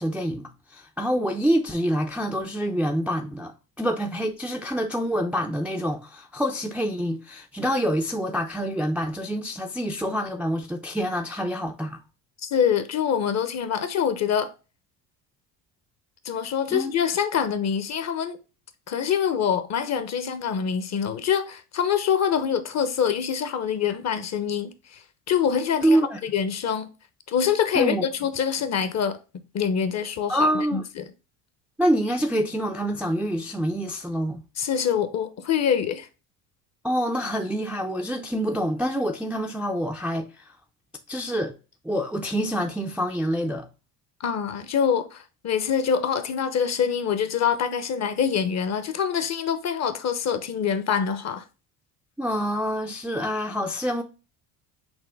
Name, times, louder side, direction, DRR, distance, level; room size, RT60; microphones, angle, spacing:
voice 1, 0.0-12.0 16.7-16.9 25.8-26.2 27.7-28.0 30.3-30.8 31.8-34.4 36.8-40.4 41.1-41.6 41.8-43.7 52.2-54.0, equal, 5° right, 0.4 m, -26 dB
voice 2, 12.4-14.5 16.2-18.4 18.9-25.0 25.3-26.9 27.3-29.2 29.5-31.0 34.6-36.1 44.2-51.4, left 7 dB, 40° left, 0.7 m, -25 dB
6.0 x 2.1 x 3.4 m
supercardioid pair, 80°, 43 cm